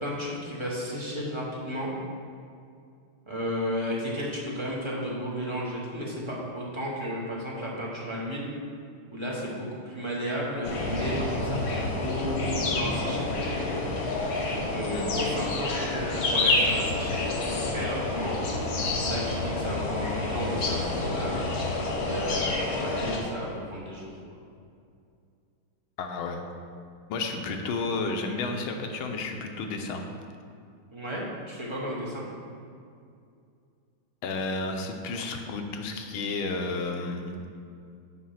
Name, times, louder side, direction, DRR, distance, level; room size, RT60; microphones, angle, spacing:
voice 1, 0.0-1.9 3.3-8.5 9.1-12.5 12.7-13.3 14.5-18.4 19.0-21.5 22.0-24.1 30.9-32.2, equal, 25° right, -5 dB, 0.7 m, -33 dB
sound 1, 10.6-23.2, left 2 dB, 55° left, 1.3 m, -28 dB
voice 2, 26.0-26.4 27.1-30.0 34.2-37.5, left 3 dB, 75° left, 4 dB, 1.5 m, -32 dB
6.2 x 4.7 x 5.6 m, 2.4 s
omnidirectional pair, 2.3 m